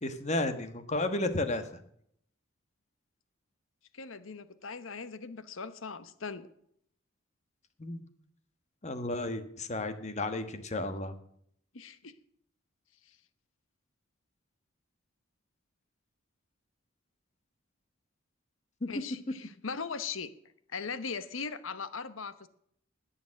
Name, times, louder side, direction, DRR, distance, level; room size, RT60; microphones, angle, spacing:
voice 1, 0.0-1.6 7.8-8.0 8.8-11.1 18.8-18.9, left 2 dB, 35° left, 10 dB, 1.3 m, -32 dB
voice 2, 3.9-6.5 11.7-12.1 13.0-13.2 18.9-20.3 20.7-22.5, left 5 dB, 70° left, 13 dB, 1.0 m, -39 dB
19.5 x 7.1 x 6.4 m, 0.68 s
head